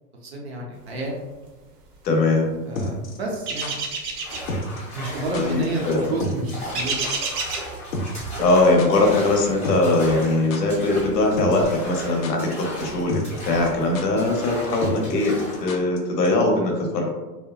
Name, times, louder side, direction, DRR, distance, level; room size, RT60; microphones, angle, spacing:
voice 1, 0.2-1.1 2.7-3.8 4.9-6.9, right 2 dB, 45° right, -1 dB, 0.4 m, -30 dB
voice 2, 2.0-2.6 5.3-6.1 8.4-17.1, left 2 dB, 85° left, 1 dB, 0.8 m, -21 dB
sound 1, 2.7-3.7 4.5-4.8 5.0-5.1 5.3-5.7 5.9-6.0 6.2-6.5 6.8-6.9 7.1-7.2 7.9-9.1 9.4-9.5 9.6-10.2 10.5-10.6 11.4-11.7 11.9-12.5 12.8-12.9 13.1-13.4 13.7-13.8 13.9-14.0 14.8-16.0 16.2-16.3, left 1 dB, 60° left, 0.5 m, -30 dB
sound 2, 3.5-4.5 6.7-7.7, right 4 dB, 80° right, 0.7 m, -28 dB
sound 3, 4.2-15.7, equal, 10° left, 0.5 m, -36 dB
2.7 x 2.2 x 2.2 m, 1.2 s
supercardioid pair, 170°, 48 cm